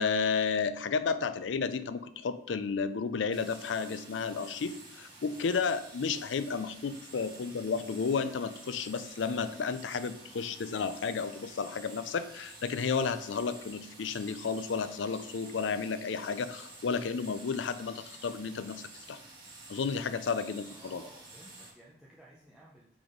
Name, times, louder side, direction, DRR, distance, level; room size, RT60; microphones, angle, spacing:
voice 1, 0.0-19.2 19.7-21.0, left 5 dB, 85° left, 12 dB, 0.4 m, -32 dB
sound 1, 3.3-21.7, right 2 dB, 25° right, 1.9 m, -50 dB
voice 2, 20.7-22.9, right 1 dB, 5° right, -5 dB, 0.7 m, -55 dB
6.0 x 3.7 x 5.0 m, 0.72 s
head